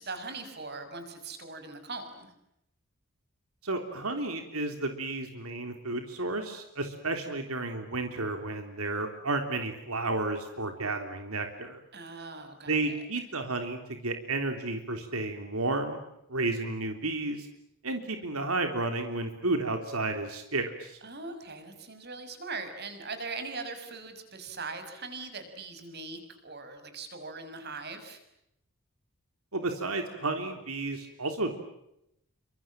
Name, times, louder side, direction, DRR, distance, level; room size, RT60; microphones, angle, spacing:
voice 1, 0.0-2.3 11.9-12.8 21.0-28.2, right 3 dB, 50° right, 8 dB, 6.2 m, -40 dB
voice 2, 3.6-11.8 12.7-16.0 16.3-17.5 17.8-21.0 29.5-31.6, right 2 dB, 85° right, 6 dB, 3.5 m, -32 dB
29.5 x 26.0 x 7.6 m, 0.82 s
head